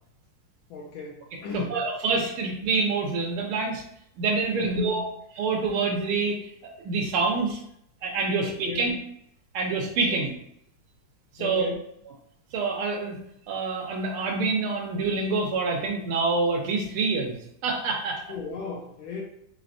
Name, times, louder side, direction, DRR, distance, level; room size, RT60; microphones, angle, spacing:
voice 1, 0.7-1.8 4.6-5.1 8.4-9.0 10.1-10.2 11.4-11.8 18.3-19.2, left 4 dB, 75° left, -2 dB, 1.4 m, -35 dB
voice 2, 1.5-3.8 4.2-5.1 5.4-7.6 8.0-9.0 9.5-10.3 11.3-11.7 12.5-13.2 13.5-17.4 17.6-18.2, right 4 dB, 80° right, 0 dB, 1.5 m, -26 dB
4.5 x 4.1 x 2.5 m, 0.73 s
omnidirectional pair, 2.4 m